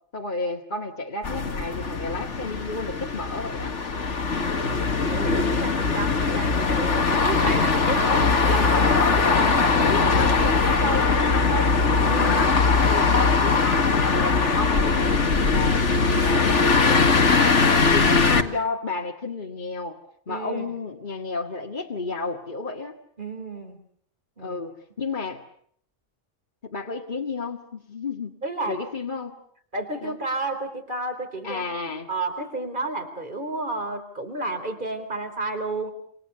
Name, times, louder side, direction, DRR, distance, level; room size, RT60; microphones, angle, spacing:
voice 1, 0.1-3.8 8.0-11.8 12.1-12.5 12.8-15.8 16.2-20.0 20.3-23.0 24.4-25.4 26.6-28.4 28.7-29.4 30.0-30.2 31.4-32.1, left 3 dB, 40° left, 0 dB, 2.1 m, -31 dB
sound 1, 1.2-18.4, left 4 dB, 70° left, 2.1 m, -21 dB
voice 2, 5.1-8.9 9.5-9.8 12.1-12.6 20.3-20.7 23.2-23.8 24.4-24.6 28.4-28.8 29.7-31.7 32.1-35.9, right 2 dB, 40° right, 7 dB, 4.3 m, -31 dB
28.0 x 28.0 x 6.8 m, 0.63 s
omnidirectional pair, 1.3 m